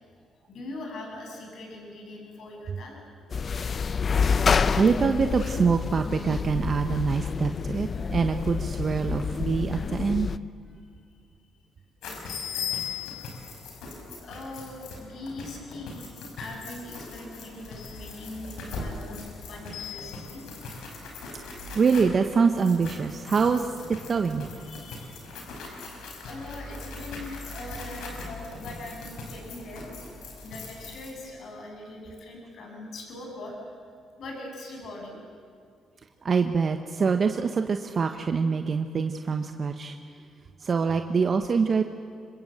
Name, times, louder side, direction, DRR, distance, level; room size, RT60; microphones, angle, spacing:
voice 1, 0.5-3.0 12.9-13.0 14.2-16.1 16.4-20.5 24.5-25.2 25.9-29.9 30.4-33.7 34.2-35.2, left 2 dB, 65° left, 1 dB, 7.6 m, -41 dB
sound 1, 3.3-10.4, left 6 dB, 40° left, 0.6 m, -28 dB
voice 2, 4.3-10.3 21.7-24.5 36.2-40.0 40.6-41.8, right 5 dB, 45° right, 6 dB, 1.2 m, -25 dB
sound 2, 12.0-31.1, left 4 dB, 85° left, 5.4 m, -39 dB
26.5 x 23.5 x 8.0 m, 2.2 s
cardioid pair, 90°, 0 cm